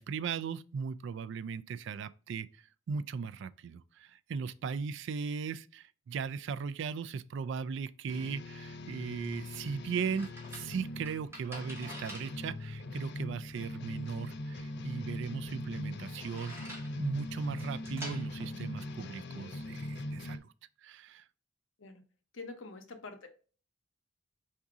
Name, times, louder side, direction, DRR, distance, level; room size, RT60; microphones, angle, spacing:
voice 1, 0.0-2.5 2.9-16.6 17.0-20.5 20.8-21.2, right 6 dB, 65° right, 0.3 m, -38 dB
sound 1, 8.1-20.4, left 1 dB, 60° left, 0.5 m, -41 dB
sound 2, 8.8-19.7, equal, 15° right, 1.6 m, -50 dB
voice 2, 22.3-23.3, left 3 dB, 80° left, 0.9 m, -45 dB
4.7 x 2.7 x 3.5 m
head